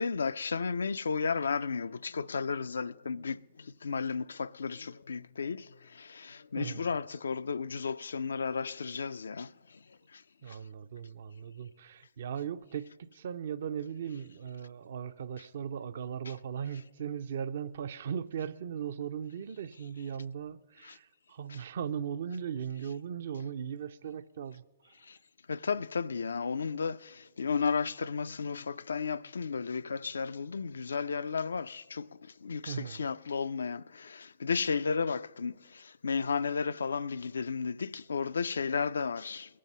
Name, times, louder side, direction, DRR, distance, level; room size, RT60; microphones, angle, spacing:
voice 1, 0.0-3.4 3.8-5.6 6.0-9.5 25.5-27.1 27.4-32.1 32.4-35.6 36.0-39.6, left 5 dB, 80° left, 0.3 m, -33 dB
voice 2, 6.6-6.9 10.4-24.9 32.7-33.0, right 8 dB, 65° right, 0.5 m, -38 dB
21.0 x 7.5 x 5.4 m
hypercardioid pair, 125°, 0 cm